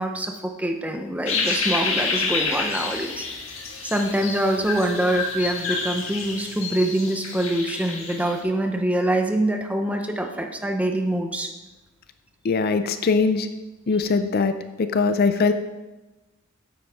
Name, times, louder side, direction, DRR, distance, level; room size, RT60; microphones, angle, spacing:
voice 1, 0.0-3.3 3.8-11.5, right 1 dB, 5° right, 4 dB, 0.7 m, -25 dB
sound 1, 1.3-8.4, left 4 dB, 70° left, 1.6 m, -28 dB
voice 2, 12.4-13.5 13.9-14.5 14.8-15.5, left 4 dB, 45° left, 9 dB, 0.4 m, -21 dB
9.3 x 8.7 x 3.5 m, 1.1 s
head